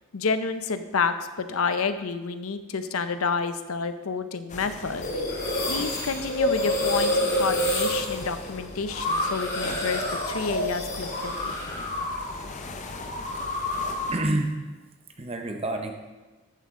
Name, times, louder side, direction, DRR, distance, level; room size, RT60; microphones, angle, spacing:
voice 1, 0.1-5.2 5.7-11.5, left 5 dB, 80° left, 10 dB, 0.7 m, -29 dB
sound 1, 4.5-14.2, left 3 dB, 35° left, 0.6 m, -40 dB
sound 2, 5.0-12.4 12.7-14.2, left 1 dB, 60° left, 3.9 m, -28 dB
voice 2, 13.3-13.8 14.1-14.6 15.2-15.9, right 1 dB, 25° right, 4 dB, 0.9 m, -29 dB
14.0 x 7.0 x 3.7 m, 1.2 s
head